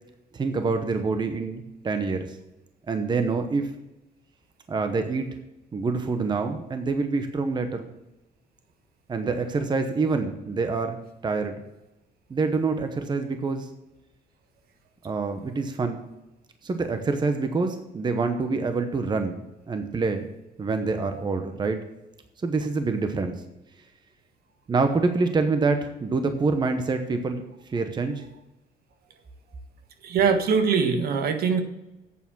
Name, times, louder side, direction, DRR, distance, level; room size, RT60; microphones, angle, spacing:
voice 1, 0.3-2.4 2.9-3.7 4.7-5.3 5.7-7.9 9.1-11.6 12.3-13.7 15.0-16.0 16.6-19.4 19.7-20.3 20.6-21.8 22.4-23.4 24.7-28.2, right 4 dB, 25° right, 7 dB, 0.9 m, -26 dB
voice 2, 30.0-31.6, right 5 dB, 65° right, 7 dB, 1.4 m, -22 dB
8.4 x 7.0 x 7.2 m, 0.96 s
cardioid pair, 110°, 17 cm